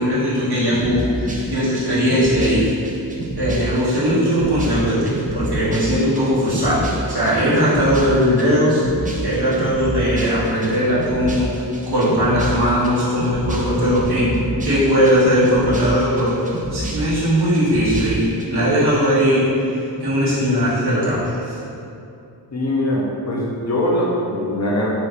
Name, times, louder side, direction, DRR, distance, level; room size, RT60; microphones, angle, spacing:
voice 1, 0.0-2.7 3.4-8.8 9.2-14.3 14.6-19.5 19.8-21.6, equal, 60° right, -10 dB, 1.2 m, -19 dB
sound 1, 0.7-18.5, right 1 dB, 20° right, 0.4 m, -29 dB
voice 2, 22.5-24.9, left 1 dB, 40° left, -3 dB, 0.6 m, -21 dB
3.1 x 3.0 x 2.5 m, 2.7 s
cardioid pair, 45°, 44 cm